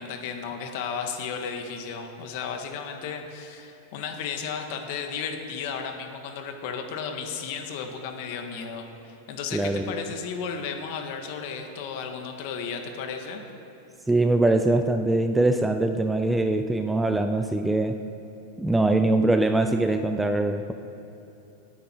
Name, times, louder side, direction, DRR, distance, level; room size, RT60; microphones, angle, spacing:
voice 1, 0.0-13.4, left 6 dB, 50° left, 4 dB, 1.6 m, -34 dB
voice 2, 9.5-10.1 14.1-18.0 18.6-20.7, right 2 dB, 5° right, 7 dB, 0.4 m, -23 dB
19.0 x 9.3 x 4.5 m, 3.0 s
supercardioid pair, 165°, 0 cm